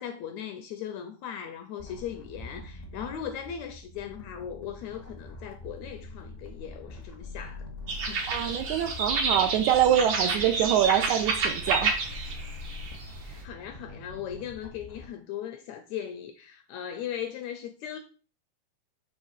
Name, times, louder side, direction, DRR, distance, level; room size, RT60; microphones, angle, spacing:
voice 1, 0.0-7.6 8.1-8.5 13.2-18.0, left 9 dB, 80° left, 1.7 m, -38 dB
sound 1, 1.8-15.1, left 2 dB, 40° left, 0.6 m, -45 dB
sound 2, 7.9-13.4, right 4 dB, 55° right, 1.4 m, -30 dB
voice 2, 8.3-12.0, right 10 dB, 80° right, 1.8 m, -25 dB
6.5 x 3.1 x 5.5 m
omnidirectional pair, 3.7 m